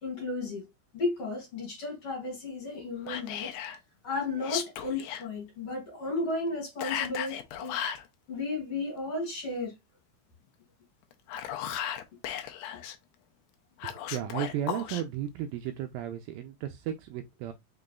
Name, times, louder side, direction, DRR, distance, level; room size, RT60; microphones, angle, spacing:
voice 1, 0.0-0.7 0.9-3.5 4.0-7.8 8.3-9.7, left 3 dB, 45° left, 2.8 m, -34 dB
Whispering, 3.1-3.8 4.4-5.2 6.8-8.1 11.1-13.0 13.8-15.0, left 10 dB, 90° left, 1.7 m, -35 dB
voice 2, 13.8-17.5, right 11 dB, 80° right, 2.1 m, -34 dB
5.5 x 3.8 x 2.3 m
omnidirectional pair, 4.4 m